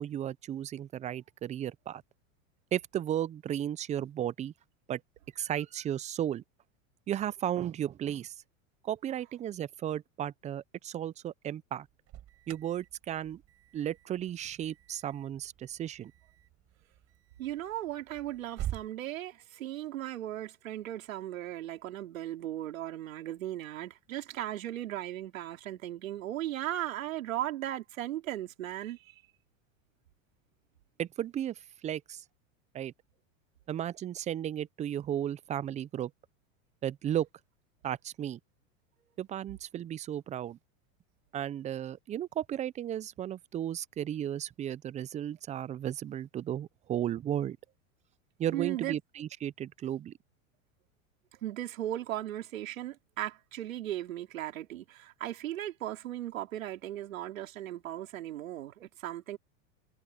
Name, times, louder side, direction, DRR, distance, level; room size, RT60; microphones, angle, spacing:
voice 1, 0.0-2.0 2.7-4.5 4.9-5.0 5.4-6.4 7.1-8.3 8.8-11.9 12.5-13.4 13.7-16.1 31.0-31.5 31.8-32.2 32.7-32.9 33.7-36.1 36.8-37.3 37.8-38.4 39.2-40.6 41.3-47.6 48.4-50.1, right 11 dB, 20° right, 0.4 m, -34 dB
Alarm, 11.9-18.9, right 12 dB, 35° right, 8.0 m, -46 dB
voice 2, 17.4-29.1 48.5-49.0 51.3-59.4, right 13 dB, 90° right, 3.9 m, -37 dB
supercardioid pair, 120°, 39 cm